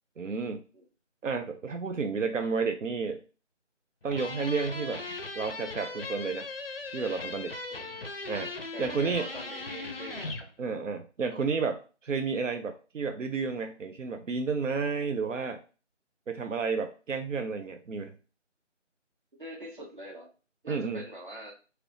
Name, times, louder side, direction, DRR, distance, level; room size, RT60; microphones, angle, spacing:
voice 1, 0.2-0.6 1.2-3.2 4.0-5.0 5.4-6.5 6.9-7.5 8.3-8.5 8.8-9.3 10.6-15.6 16.3-18.1 20.7-21.0, right 5 dB, 85° right, 7 dB, 0.5 m, -31 dB
sound 1, 4.1-10.5, left 3 dB, 50° left, 0.4 m, -38 dB
voice 2, 8.7-10.3 19.4-20.3 20.6-21.5, right 1 dB, 45° right, -1 dB, 0.9 m, -43 dB
2.9 x 2.4 x 3.2 m, 0.35 s
figure-of-eight pair, 170°, 37 cm